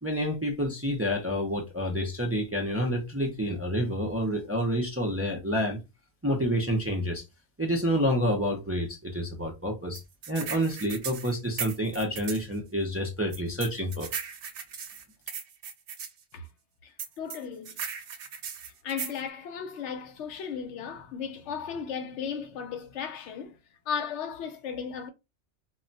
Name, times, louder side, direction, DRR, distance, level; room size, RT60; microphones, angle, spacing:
voice 1, 0.0-5.8 6.2-7.2 7.6-10.0 10.3-14.1, equal, 25° right, 0.3 m, -28 dB
sound 1, 9.9-12.5 13.3-16.1 17.0-19.2, right 7 dB, 85° right, 0.9 m, -37 dB
voice 2, 16.8-17.8 18.8-23.6 23.9-25.1, left 7 dB, 85° left, 0.9 m, -35 dB
2.2 x 2.2 x 3.8 m
omnidirectional pair, 1.2 m